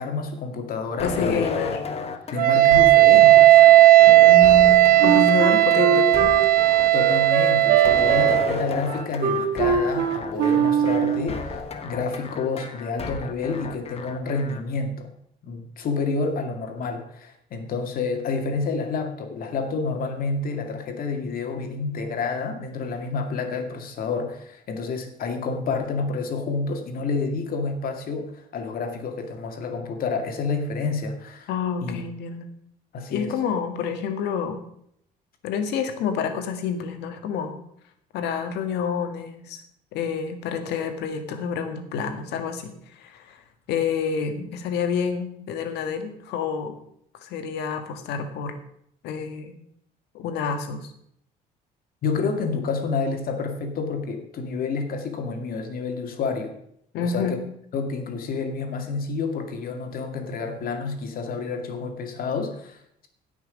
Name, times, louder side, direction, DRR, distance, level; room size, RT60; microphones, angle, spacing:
voice 1, 0.0-1.4 2.3-3.6 6.9-15.1 15.4-31.5 31.8-32.0 32.9-33.3 52.0-56.5 57.0-57.4 57.7-63.1, left 4 dB, 60° left, 5 dB, 2.2 m, -29 dB
voice 2, 1.0-1.8 4.1-6.3 31.5-32.5 33.1-34.6 35.4-37.6 38.1-39.6 39.9-43.4 43.7-46.8 47.2-48.6 49.0-49.6 50.1-50.9 56.9-57.4, left 6 dB, 85° left, 7 dB, 1.7 m, -28 dB
sound 1, 1.0-14.6, left 5 dB, 35° left, 1.4 m, -33 dB
Wind instrument woodwind instrument, 2.4-8.5, right 16 dB, 60° right, 0.6 m, -15 dB
Wind instrument woodwind instrument 2, 5.0-11.3, right 7 dB, 80° right, 1.7 m, -23 dB
17.0 x 6.1 x 5.2 m, 0.72 s
cardioid pair, 110°, 17 cm